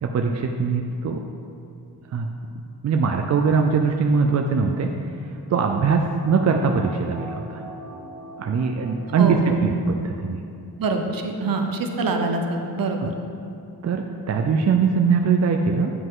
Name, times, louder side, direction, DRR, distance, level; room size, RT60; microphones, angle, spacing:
voice 1, 0.0-1.2 2.1-2.3 2.8-4.9 5.5-7.6 8.4-10.4 13.0-13.1 13.8-15.9, right 5 dB, 45° right, 3 dB, 0.4 m, -21 dB
sound 1, 5.1-9.9 10.2-10.3, equal, 70° left, 1.7 m, -42 dB
voice 2, 9.2-9.5 10.8-13.1, right 3 dB, 60° right, 4 dB, 0.8 m, -24 dB
9.7 x 5.4 x 3.7 m, 2.6 s
wide cardioid pair, 145°, 39 cm